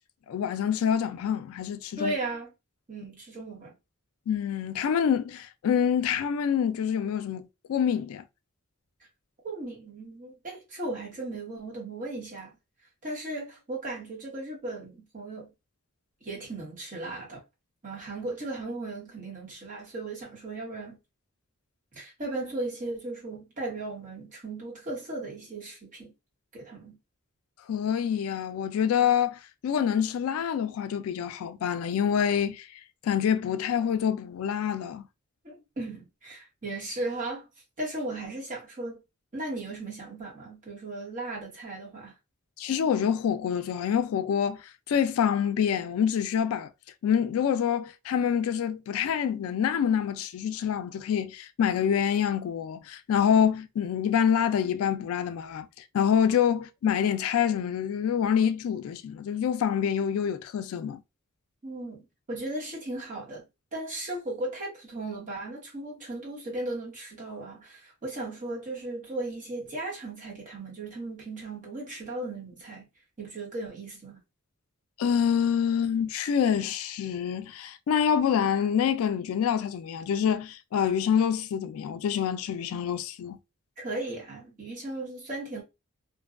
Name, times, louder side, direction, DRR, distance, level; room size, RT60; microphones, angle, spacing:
voice 1, 0.3-2.1 4.3-8.2 27.7-32.7 33.0-35.1 42.6-46.7 47.0-55.7 55.9-61.0 75.0-83.4, left 8 dB, 75° left, 0.3 m, -26 dB
voice 2, 2.0-2.5 2.9-3.7 9.4-12.5 13.0-15.5 16.2-17.4 17.8-21.0 21.9-26.1 26.5-27.0 35.4-37.4 37.8-39.0 39.3-42.1 61.6-62.0 62.3-63.4 63.7-72.9 73.2-74.2 83.8-85.6, right 2 dB, 35° right, 1.1 m, -36 dB
2.6 x 2.2 x 2.4 m
head